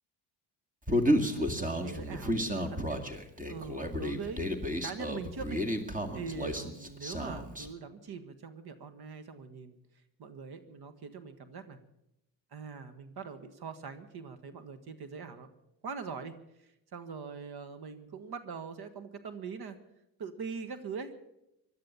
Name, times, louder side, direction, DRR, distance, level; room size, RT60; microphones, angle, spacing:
Human voice, 0.9-7.7, equal, 15° right, 2.1 m, -32 dB
voice 1, 1.1-3.0 3.5-4.5 4.8-5.6 6.1-9.8 10.2-11.8 12.5-15.5 15.8-19.8 20.2-21.1, right 5 dB, 55° right, 11 dB, 1.6 m, -42 dB
16.5 x 12.0 x 7.0 m, 0.84 s
supercardioid pair, 80°, 46 cm